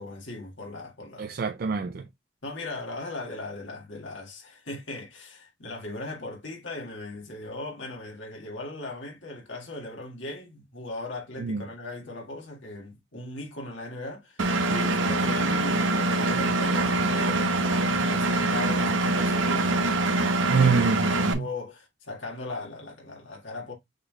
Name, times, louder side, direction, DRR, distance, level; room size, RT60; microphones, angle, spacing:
voice 1, 0.0-1.3 2.4-19.8 20.1-20.7 21.1-23.7, left 2 dB, 75° left, 2.0 m, -38 dB
voice 2, 1.2-2.1 11.4-11.6 20.5-21.5, right 5 dB, 50° right, 0.4 m, -26 dB
Engine, 14.4-21.3, right 2 dB, 80° right, 0.9 m, -24 dB
6.4 x 3.4 x 2.3 m
head